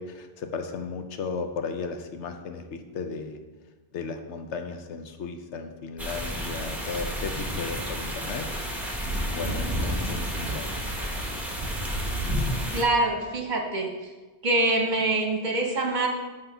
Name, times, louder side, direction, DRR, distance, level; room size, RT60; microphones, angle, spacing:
voice 1, 0.0-3.4 3.9-8.5 9.3-10.7, left 5 dB, 85° left, 7 dB, 1.0 m, -35 dB
sound 1, 6.0-12.8, equal, ahead, 0.9 m, -30 dB
voice 2, 12.7-13.9 14.4-16.1, right 2 dB, 45° right, 1 dB, 1.1 m, -24 dB
7.9 x 3.6 x 5.5 m, 1.3 s
omnidirectional pair, 1.1 m